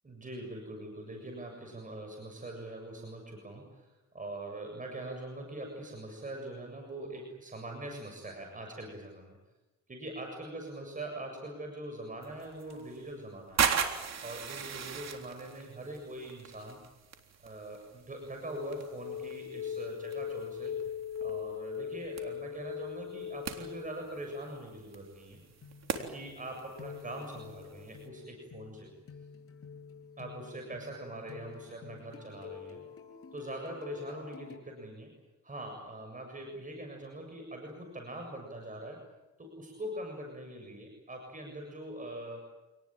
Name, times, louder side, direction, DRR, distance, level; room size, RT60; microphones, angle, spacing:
voice 1, 0.0-9.4 9.9-16.8 17.4-20.8 21.2-25.4 25.9-28.9 30.2-32.8 33.3-35.1 35.4-39.0 39.4-42.5, right 1 dB, 25° right, 2 dB, 7.2 m, -43 dB
sound 1, 12.2-28.1, right 7 dB, 60° right, 3.8 m, -39 dB
sound 2, 18.5-25.3 25.6-34.6, left 8 dB, 50° left, 6.8 m, -43 dB
28.5 x 20.0 x 9.1 m, 1.1 s
cardioid pair, 90°, 30 cm